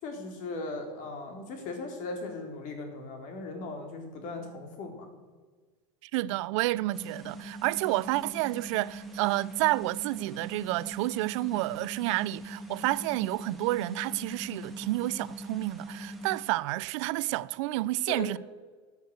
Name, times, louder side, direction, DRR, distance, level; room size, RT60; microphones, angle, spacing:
voice 1, 0.0-5.1 18.1-18.4, left 3 dB, 55° left, 3.8 m, -38 dB
voice 2, 6.0-18.4, right 18 dB, 70° right, 0.5 m, -30 dB
sound 1, 6.9-16.4, right 1 dB, ahead, 2.3 m, -42 dB
13.5 x 8.1 x 8.0 m
supercardioid pair, 110°, 16 cm